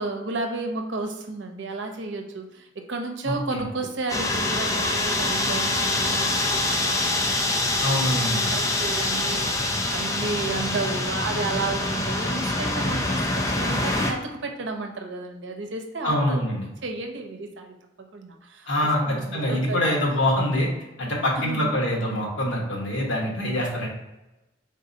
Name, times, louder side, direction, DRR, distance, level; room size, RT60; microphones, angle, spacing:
voice 1, 0.0-7.2 8.5-16.4 16.8-18.7 19.0-19.9 21.4-21.7, right 3 dB, 75° right, 4 dB, 0.6 m, -32 dB
voice 2, 3.2-3.7 7.8-8.6 16.0-16.7 18.7-20.7 21.0-23.9, left 1 dB, 85° left, -2 dB, 1.2 m, -25 dB
sound 1, 4.1-14.1, left 2 dB, 15° left, 0.4 m, -25 dB
3.9 x 3.7 x 2.7 m, 0.99 s
head